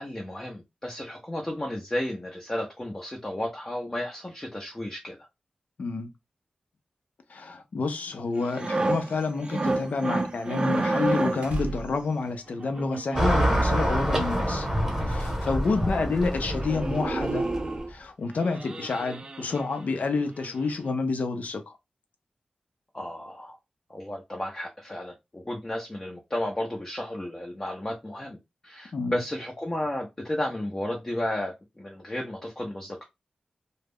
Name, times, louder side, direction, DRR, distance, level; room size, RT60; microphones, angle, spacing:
voice 1, 0.0-5.2 15.7-16.1 22.9-23.6 23.9-28.4 28.6-33.0, left 1 dB, 20° left, 0.5 m, -33 dB
voice 2, 5.8-6.1 7.3-14.7 15.0-17.5 17.9-21.8 28.9-29.2, left 3 dB, 70° left, 0.5 m, -29 dB
sound 1, 8.4-11.6 12.6-13.8 14.9-15.0 15.3-15.4 15.7-15.9 16.2-16.4 16.6-17.9 18.4-20.0 20.4-20.6, right 2 dB, 30° right, 0.4 m, -30 dB
sound 2, 8.4-12.1, right 3 dB, 85° right, 0.5 m, -40 dB
Car passing by / Traffic noise roadway noise, 13.2-17.8, right 1 dB, 15° right, 0.9 m, -26 dB
2.3 x 2.0 x 3.4 m
wide cardioid pair, 110°, 3 cm